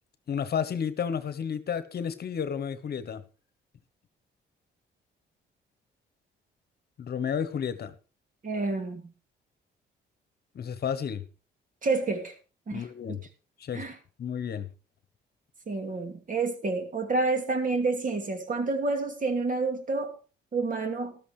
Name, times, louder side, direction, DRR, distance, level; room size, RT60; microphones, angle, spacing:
voice 1, 0.3-3.2 7.0-7.9 10.5-11.2 12.7-13.2 13.6-13.8 14.2-14.7, left 7 dB, 55° left, 1.1 m, -31 dB
voice 2, 8.4-9.1 11.8-12.3 12.7-13.2 13.7-13.9 15.7-20.1 20.5-21.1, right 3 dB, 40° right, 2.7 m, -29 dB
14.0 x 12.5 x 3.3 m
cardioid pair, 90°, 20 cm